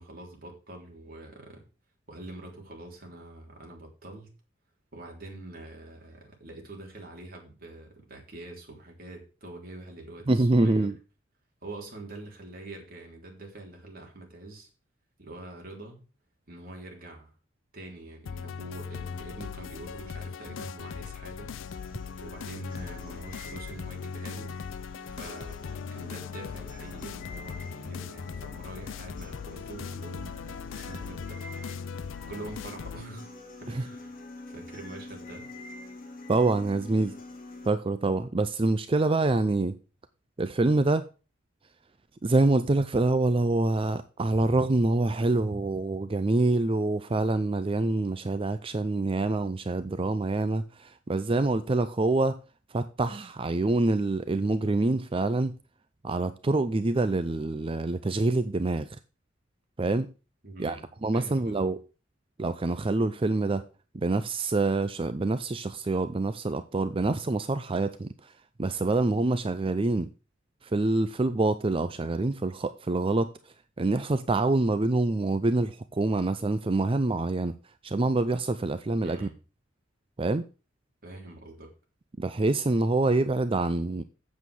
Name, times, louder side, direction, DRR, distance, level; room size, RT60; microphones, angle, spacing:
voice 1, 0.0-1.6 2.1-4.3 4.9-10.9 11.6-14.7 15.2-16.0 16.5-17.3 17.7-21.6 22.2-24.6 25.1-31.4 31.7-35.5 60.4-61.7 79.0-79.4 81.0-81.7, right 2 dB, 50° right, 3.5 m, -45 dB
voice 2, 10.3-10.9 33.8-33.9 36.3-37.2 37.7-39.8 40.4-41.1 42.2-52.4 52.7-55.5 56.0-58.9 59.8-60.1 60.6-60.8 61.0-61.8 62.4-63.7 63.9-68.3 68.6-70.1 70.6-73.3 73.8-77.6 77.8-79.3 80.2-80.4 82.2-84.0, right 2 dB, 30° right, 0.5 m, -26 dB
sound 1, 18.3-33.0, left 6 dB, 85° left, 0.4 m, -39 dB
sound 2, 21.7-37.7, left 2 dB, 50° left, 2.0 m, -46 dB
8.3 x 7.3 x 6.3 m
head